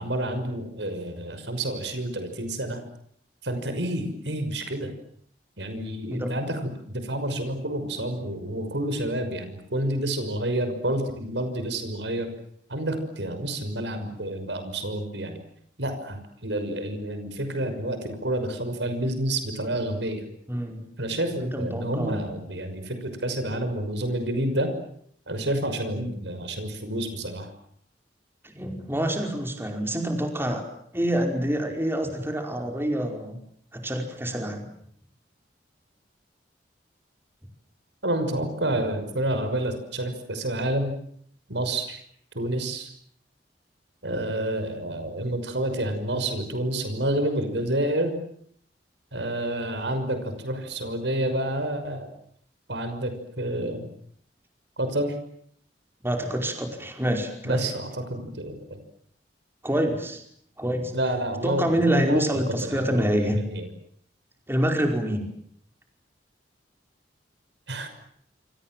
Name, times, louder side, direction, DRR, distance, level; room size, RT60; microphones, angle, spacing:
voice 1, 0.0-2.8 3.4-4.9 5.6-12.3 12.7-15.4 15.8-20.3 21.0-24.7 25.3-27.5 38.0-40.9 41.5-42.0 42.3-42.9 44.0-48.1 49.1-52.1 52.7-53.9 54.8-55.1 57.4-58.6 60.9-63.7 67.7-67.9, right 1 dB, 90° right, 8 dB, 6.0 m, -29 dB
voice 2, 20.5-20.8 21.4-22.3 26.0-26.1 28.5-30.6 30.9-33.4 33.7-34.7 56.0-57.7 59.6-60.2 60.6-60.9 61.4-63.4 64.5-65.3, equal, 15° right, 3 dB, 5.1 m, -26 dB
28.0 x 26.5 x 7.7 m, 0.67 s
head